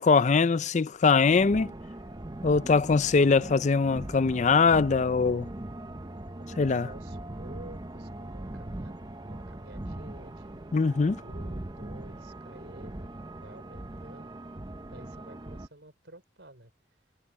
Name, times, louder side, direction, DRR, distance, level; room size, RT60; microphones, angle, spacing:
voice 1, 0.0-1.7 2.4-5.5 6.6-6.9 10.7-11.2, left 4 dB, 40° left, 0.4 m, -22 dB
sound 1, 1.3-15.7, right 1 dB, 25° right, 0.8 m, -40 dB
voice 2, 6.4-10.6 11.2-14.4 14.8-16.7, right 1 dB, 75° right, 4.5 m, -50 dB
head